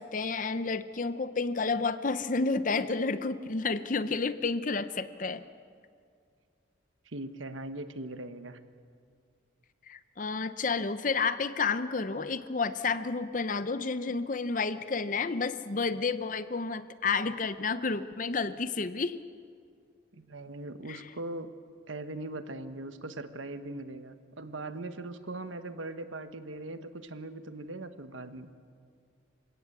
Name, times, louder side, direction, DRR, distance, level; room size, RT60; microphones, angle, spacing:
voice 1, 0.0-5.4 9.9-19.2 20.9-21.0, left 4 dB, 40° left, 12 dB, 0.7 m, -30 dB
voice 2, 7.0-8.6 20.1-21.5 21.9-28.5, right 2 dB, 90° right, 10 dB, 1.3 m, -40 dB
28.0 x 16.5 x 8.5 m, 2.2 s
head